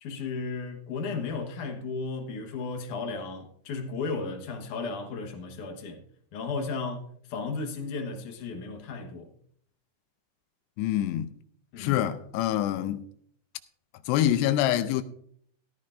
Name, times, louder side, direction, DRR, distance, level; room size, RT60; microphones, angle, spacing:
voice 1, 0.0-6.0 6.3-9.3 11.7-12.0, left 4 dB, 65° left, 2.2 m, -34 dB
voice 2, 10.8-11.3 11.8-13.0 14.1-15.0, left 12 dB, 85° left, 2.8 m, -25 dB
14.5 x 14.0 x 2.6 m
omnidirectional pair, 4.9 m